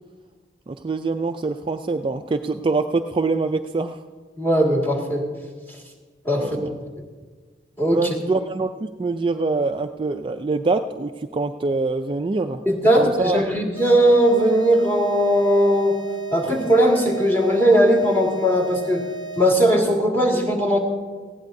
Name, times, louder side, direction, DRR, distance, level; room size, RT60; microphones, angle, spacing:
voice 1, 0.7-4.0 6.4-6.7 7.9-12.6 13.0-13.4, right 3 dB, 30° right, 6 dB, 0.3 m, -24 dB
voice 2, 4.4-5.2 6.2-6.5 7.8-8.1 12.7-16.0 16.3-19.0 19.4-20.8, equal, 10° left, -3 dB, 2.0 m, -18 dB
sound 1, 13.8-19.7, right 2 dB, 80° left, 1.9 m, -35 dB
19.0 x 15.5 x 2.7 m, 1.5 s
head